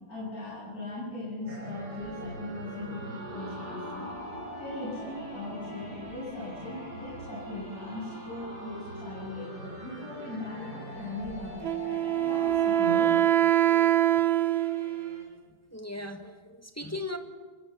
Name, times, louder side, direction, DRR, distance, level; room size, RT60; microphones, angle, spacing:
voice 1, 0.1-4.1 4.5-11.6 12.3-13.2, left 2 dB, 55° left, -7 dB, 8.5 m, -39 dB
sound 1, 1.4-15.2, right 1 dB, 25° right, 7.1 m, -47 dB
sound 2, 1.5-13.2, right 1 dB, 65° right, 4.0 m, -43 dB
Wind instrument woodwind instrument, 11.6-15.2, right 12 dB, 45° right, 0.9 m, -24 dB
voice 2, 13.7-14.3 15.7-17.2, left 2 dB, 10° left, 6 dB, 1.4 m, -39 dB
26.0 x 21.5 x 7.3 m, 1.5 s
omnidirectional pair, 1.8 m